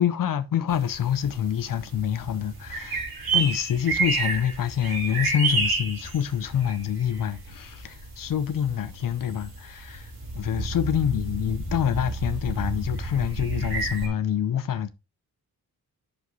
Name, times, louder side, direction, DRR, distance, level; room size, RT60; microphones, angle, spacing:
voice 1, 0.0-3.1 3.3-14.9, left 9 dB, 65° left, 0.7 m, -26 dB
sound 1, 0.7-14.1, right 3 dB, 90° right, 3.3 m, -31 dB
8.3 x 6.4 x 3.0 m
wide cardioid pair, 150°, 36 cm